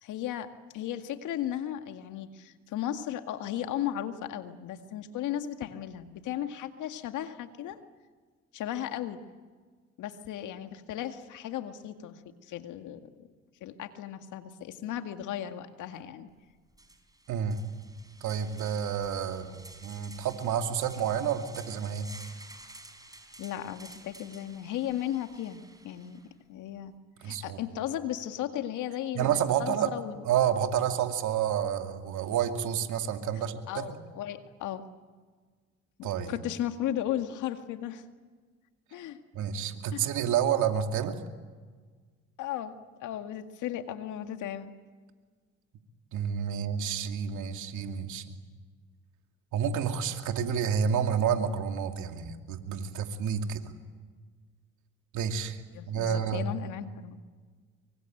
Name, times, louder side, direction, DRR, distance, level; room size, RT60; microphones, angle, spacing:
voice 1, 0.0-7.8 8.5-9.2 10.0-13.3 13.6-16.3 23.4-26.2 26.5-26.9 27.2-30.2 33.7-34.8 36.0-38.0 38.9-39.2 39.9-40.1 42.4-44.7 55.7-57.2, left 11 dB, 70° left, 7 dB, 2.0 m, -36 dB
sound 1, 16.3-16.4 16.7-26.3, right 2 dB, 10° right, 5.0 m, -52 dB
voice 2, 17.3-17.6 18.2-22.1 27.2-27.6 29.1-29.9 30.2-34.0 36.0-36.3 39.3-41.2 46.1-48.3 49.5-53.6 55.1-55.6 55.9-56.4, right 8 dB, 70° right, 5 dB, 2.6 m, -29 dB
24.5 x 24.0 x 9.2 m, 1.5 s
supercardioid pair, 65°, 31 cm